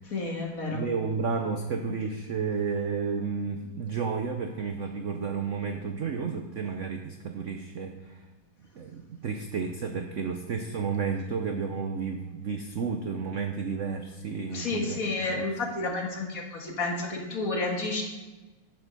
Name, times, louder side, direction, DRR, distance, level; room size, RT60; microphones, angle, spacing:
voice 1, 0.1-0.8 14.5-18.0, left 3 dB, 45° left, 1 dB, 2.0 m, -31 dB
voice 2, 0.7-8.2 8.8-15.0 15.3-15.5, right 5 dB, 65° right, 5 dB, 0.7 m, -32 dB
10.5 x 7.4 x 5.4 m, 1.2 s
omnidirectional pair, 2.1 m